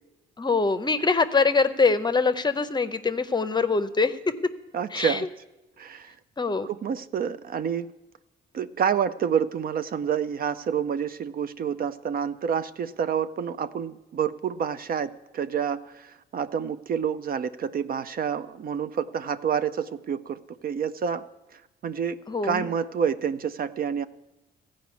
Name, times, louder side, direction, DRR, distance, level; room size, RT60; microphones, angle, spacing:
voice 1, 0.4-4.1 4.9-5.2 6.4-6.7 22.3-22.7, left 4 dB, 20° left, 11 dB, 0.6 m, -23 dB
voice 2, 4.7-5.3 5.8-6.1 6.6-7.9 8.5-21.2 21.8-22.2 22.4-24.0, right 7 dB, 50° right, 12 dB, 0.4 m, -28 dB
15.0 x 5.1 x 8.2 m, 1.0 s
cardioid pair, 90°, 20 cm